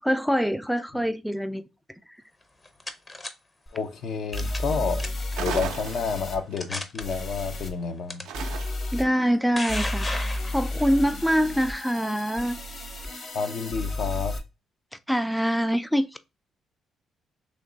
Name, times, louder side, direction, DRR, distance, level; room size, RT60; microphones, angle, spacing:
voice 1, 0.0-1.6 8.9-12.6 15.1-16.2, equal, ahead, 0.3 m, -25 dB
sound 1, 2.4-3.3 4.3-4.7 5.0-5.3 6.0-6.1 6.6-7.0 8.1-8.2 9.1-10.9, left 2 dB, 25° left, 0.7 m, -34 dB
voice 2, 3.7-5.1 5.4-8.2 13.3-14.4, left 5 dB, 65° left, 0.7 m, -29 dB
sound 2, 3.7-3.8 4.3-6.4 7.0-7.7 8.3-9.0 9.7-14.4, left 1 dB, 50° left, 1.2 m, -32 dB
sound 3, 5.3-6.5 8.3-9.0, right 9 dB, 85° right, 0.4 m, -35 dB
3.3 x 3.1 x 3.9 m
cardioid pair, 90°, 0 cm